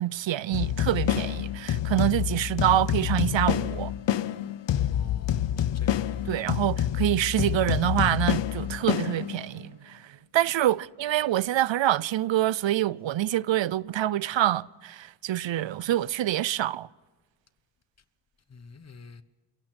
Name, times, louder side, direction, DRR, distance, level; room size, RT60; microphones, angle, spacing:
voice 1, 0.0-3.9 6.3-10.0 10.3-16.9, right 13 dB, 80° right, 0.6 m, -26 dB
sound 1, 0.5-9.6, left 11 dB, 70° left, 0.7 m, -27 dB
voice 2, 4.9-6.2 18.5-19.2, left 5 dB, 35° left, 1.0 m, -48 dB
30.0 x 17.0 x 6.1 m
wide cardioid pair, 170°, 45 cm